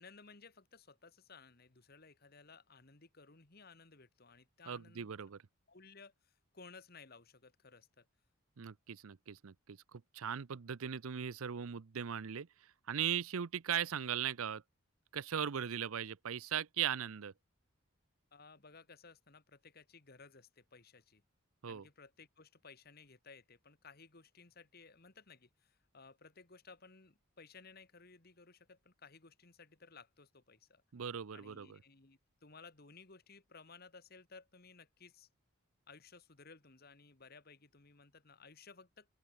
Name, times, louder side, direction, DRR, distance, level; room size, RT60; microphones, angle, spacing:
voice 1, 0.0-5.1 5.7-8.1 18.3-21.2 21.6-30.8 31.3-35.3 35.9-39.1, left 4 dB, 45° left, 1.7 m, -58 dB
voice 2, 4.7-5.4 8.6-12.5 12.9-14.6 15.1-17.3 21.6-21.9 30.9-31.7, right 8 dB, 75° right, 0.6 m, -38 dB
open air
head